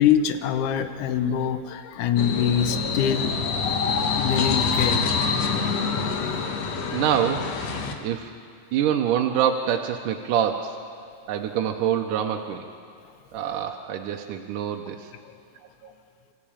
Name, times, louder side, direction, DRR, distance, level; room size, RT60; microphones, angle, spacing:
voice 1, 0.0-3.3 4.2-5.1 15.2-15.3, left 9 dB, 85° left, 9 dB, 1.7 m, -24 dB
sound 1, 2.2-7.9, left 5 dB, 60° left, 1.9 m, -26 dB
voice 2, 6.9-7.5 8.0-8.3 8.7-10.8 11.3-12.6 13.3-15.1 15.8-15.9, right 9 dB, 75° right, 3 dB, 2.1 m, -25 dB
25.5 x 15.0 x 8.8 m, 2.3 s
omnidirectional pair, 4.6 m